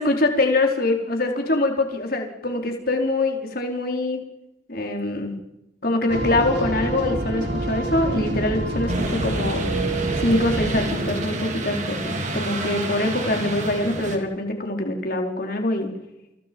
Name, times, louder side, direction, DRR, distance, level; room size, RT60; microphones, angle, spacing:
voice 1, 0.0-4.2 4.7-5.3 5.8-9.6 10.2-15.9, left 2 dB, 50° left, 3 dB, 4.3 m, -24 dB
sound 1, 6.1-11.1, right 1 dB, 60° right, 5.3 m, -27 dB
sound 2, 8.9-14.2, right 2 dB, 35° right, 3.5 m, -29 dB
29.0 x 28.5 x 5.5 m, 0.90 s
head